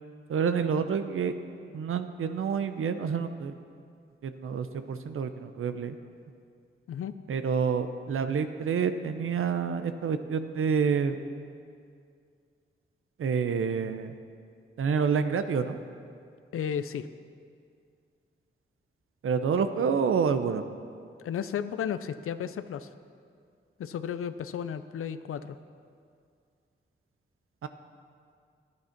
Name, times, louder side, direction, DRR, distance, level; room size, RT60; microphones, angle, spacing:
voice 1, 0.3-1.4 1.7-3.5 4.2-6.0 7.3-11.2 13.2-14.1 14.8-15.8 19.2-20.6 27.6-27.7, right 6 dB, 80° right, 9 dB, 0.6 m, -28 dB
voice 2, 16.5-17.1 21.2-22.9 23.8-25.6, left 8 dB, 90° left, 12 dB, 0.5 m, -33 dB
11.5 x 9.5 x 5.8 m, 2.3 s
cardioid pair, 75°, 21 cm